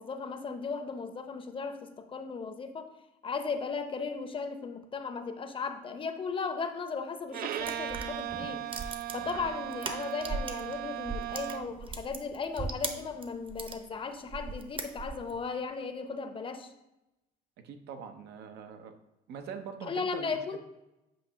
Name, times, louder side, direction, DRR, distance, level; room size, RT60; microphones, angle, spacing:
voice 1, 0.0-2.9 3.2-8.6 9.1-16.7 19.8-20.6, left 5 dB, 30° left, 8 dB, 0.7 m, -36 dB
Bowed string instrument, 7.3-11.8, right 12 dB, 60° right, 0.5 m, -37 dB
sound 1, 7.6-10.7 11.0-13.8 14.3-15.4, right 4 dB, 30° right, 0.8 m, -38 dB
voice 2, 17.6-18.9 19.3-20.6, right 7 dB, 80° right, 7 dB, 0.8 m, -43 dB
7.8 x 2.9 x 5.6 m, 0.94 s
cardioid pair, 110°, 17 cm